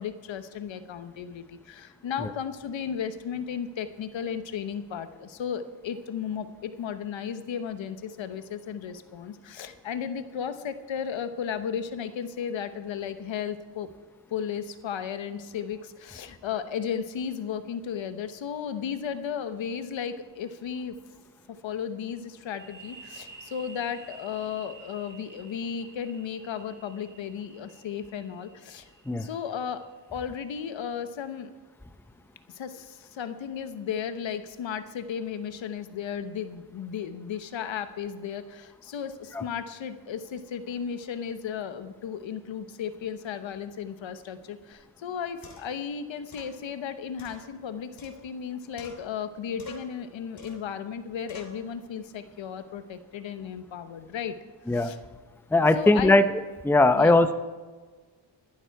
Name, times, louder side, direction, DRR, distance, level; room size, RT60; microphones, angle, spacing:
voice 1, 0.0-13.9 14.3-21.0 21.5-28.9 29.2-31.5 32.5-54.4 54.7-55.0 55.7-56.2 56.9-57.2, left 7 dB, 85° left, 10 dB, 1.0 m, -35 dB
sound 1, 22.6-30.1, right 3 dB, 45° right, 3.4 m, -50 dB
sound 2, 44.7-44.8 45.4-45.8 46.3-46.6 47.2-48.5 48.8-49.3 49.6-50.0 50.4-50.7 51.3-51.6, left 2 dB, 50° left, 2.9 m, -48 dB
voice 2, 55.5-56.3 56.6-57.3, left 2 dB, 5° left, 10 dB, 0.6 m, -19 dB
13.5 x 12.0 x 4.7 m, 1.4 s
cardioid pair, 90°, 45 cm